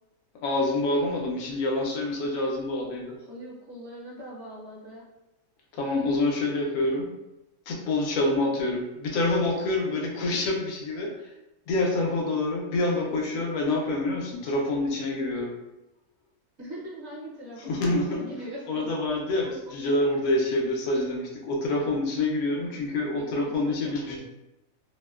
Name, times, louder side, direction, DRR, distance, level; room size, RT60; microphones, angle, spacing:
voice 1, 0.4-3.2 5.7-7.1 7.7-11.1 11.7-15.6 17.6-18.2 18.7-24.2, left 2 dB, 80° left, -1 dB, 1.1 m, -27 dB
voice 2, 3.2-5.0 16.6-18.9 19.4-19.5 22.4-22.8 23.2-24.2, right 1 dB, 55° right, -6 dB, 0.9 m, -41 dB
2.7 x 2.1 x 2.2 m, 0.96 s
omnidirectional pair, 1.5 m